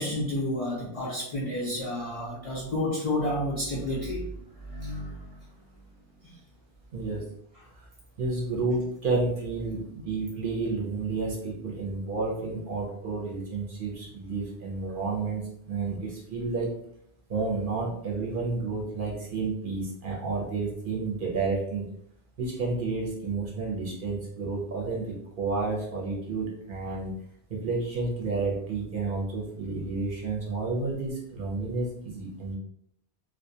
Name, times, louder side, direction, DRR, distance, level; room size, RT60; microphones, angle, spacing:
voice 1, 0.0-4.2 4.6-5.2, left 1 dB, 70° left, -5 dB, 0.3 m, -30 dB
voice 2, 6.9-7.2 7.8-7.9 8.2-16.7 17.3-21.8 22.4-27.1 27.5-32.5, right 3 dB, 55° right, -3 dB, 0.7 m, -31 dB
2.3 x 2.1 x 2.6 m, 0.71 s
omnidirectional pair, 1.2 m